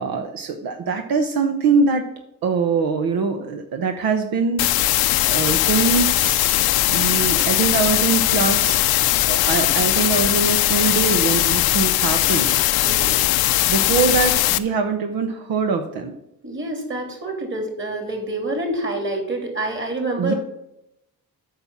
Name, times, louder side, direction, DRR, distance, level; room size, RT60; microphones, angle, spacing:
voice 1, 0.0-2.0 2.4-5.0 5.2-6.6 6.9-12.5 13.7-16.1 20.2-20.3, right 5 dB, 75° right, 5 dB, 1.1 m, -23 dB
sound 1, 4.6-14.6, left 15 dB, 85° left, 0.7 m, -19 dB
voice 2, 12.8-13.2 16.4-20.4, right 2 dB, 30° right, 3 dB, 3.2 m, -27 dB
8.7 x 5.9 x 7.3 m, 0.83 s
cardioid pair, 110°, 36 cm